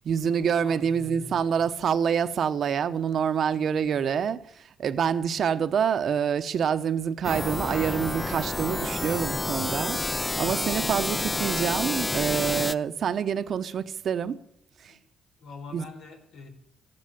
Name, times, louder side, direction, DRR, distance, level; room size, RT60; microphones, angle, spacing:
voice 1, 0.0-4.4 4.8-14.4 15.7-15.8, right 7 dB, 60° right, 0.9 m, -26 dB
voice 2, 0.6-1.7 14.9-15.0 15.4-16.5, left 4 dB, 85° left, 4.5 m, -45 dB
sound 1, 7.2-12.7, left 2 dB, 15° left, 0.6 m, -29 dB
14.5 x 11.0 x 8.7 m
cardioid pair, 90°, 0 cm